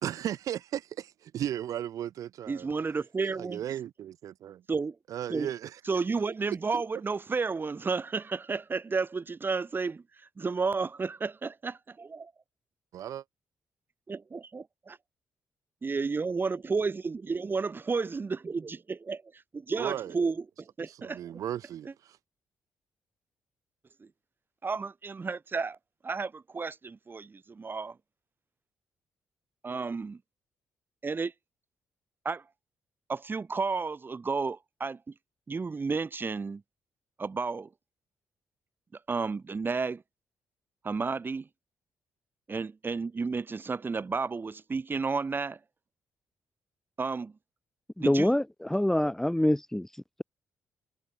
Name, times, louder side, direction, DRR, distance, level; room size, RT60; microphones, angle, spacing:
voice 1, 0.0-2.7 3.3-4.6 5.1-5.8 6.5-6.6 12.9-13.2 19.7-20.2 20.9-22.2, right 11 dB, 75° right, 1.3 m, -35 dB
voice 2, 2.5-3.6 4.7-5.0 5.3-5.5 5.9-10.0 10.4-12.3 14.1-15.0 15.8-21.4 21.8-21.9 24.0-24.1 24.6-25.8 26.0-28.0 29.6-30.2 31.0-31.3 32.2-32.4 33.1-35.1 35.5-36.6 37.2-37.7 39.1-40.0 40.8-41.5 42.5-45.6 47.0-47.3 48.0-48.3 48.7-48.8, right 4 dB, 35° right, 3.3 m, -32 dB
voice 3, 48.1-48.4 48.7-49.9, left 1 dB, 5° left, 0.8 m, -24 dB
supercardioid pair, 65°, 6 cm